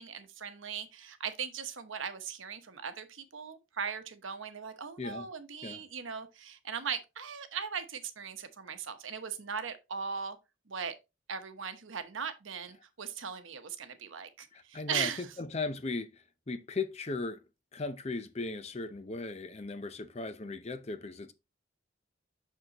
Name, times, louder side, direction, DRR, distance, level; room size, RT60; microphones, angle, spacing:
voice 1, 0.0-10.4 10.7-10.9 11.3-15.3, right 6 dB, 80° right, 1.0 m, -39 dB
voice 2, 5.0-5.3 5.6-5.8 14.5-17.4 17.7-21.3, left 3 dB, 35° left, 0.6 m, -37 dB
6.6 x 6.2 x 2.9 m
head